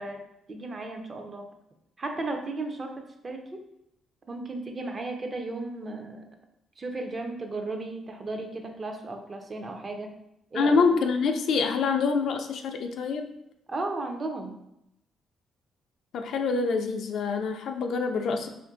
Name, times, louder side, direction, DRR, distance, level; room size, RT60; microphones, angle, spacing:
voice 1, 0.0-1.5 2.0-3.6 4.3-6.3 6.8-10.2 10.5-10.9 13.7-14.6, right 2 dB, 35° right, 4 dB, 0.5 m, -35 dB
voice 2, 10.5-13.3 16.1-18.5, left 4 dB, 70° left, 5 dB, 0.3 m, -26 dB
2.6 x 2.5 x 3.7 m, 0.81 s
cardioid pair, 90°, 0 cm